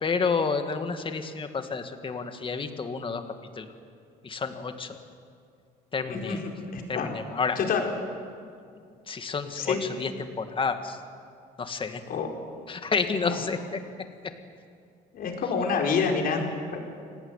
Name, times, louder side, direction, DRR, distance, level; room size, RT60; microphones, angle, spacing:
voice 1, 0.0-3.2 3.6-3.7 4.2-5.0 5.9-6.4 6.9-7.6 9.1-11.0 11.6-12.0 12.7-13.8, left 5 dB, 30° left, 7 dB, 2.3 m, -30 dB
voice 2, 6.1-7.1 7.5-7.9 9.5-9.8 12.1-12.3 13.0-13.4 15.1-16.8, left 5 dB, 60° left, 2 dB, 4.8 m, -28 dB
27.0 x 18.5 x 9.2 m, 2.3 s
cardioid pair, 110°, 17 cm